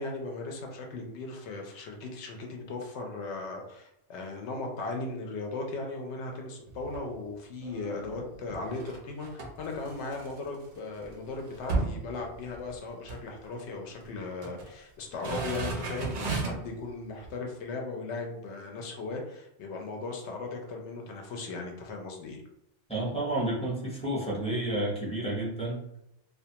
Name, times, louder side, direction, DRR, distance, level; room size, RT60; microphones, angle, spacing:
voice 1, 0.0-22.4, left 3 dB, 70° left, 1 dB, 0.8 m, -37 dB
sound 1, 6.7-7.1 7.6-10.7 11.0-11.1 11.4-12.8 13.0-13.3 14.1-14.7 15.1-16.7 17.2-17.3, right 3 dB, 55° right, 0.5 m, -35 dB
voice 2, 22.9-26.0, right 1 dB, 5° left, -6 dB, 0.5 m, -31 dB
2.4 x 2.2 x 2.7 m, 0.82 s
omnidirectional pair, 1.3 m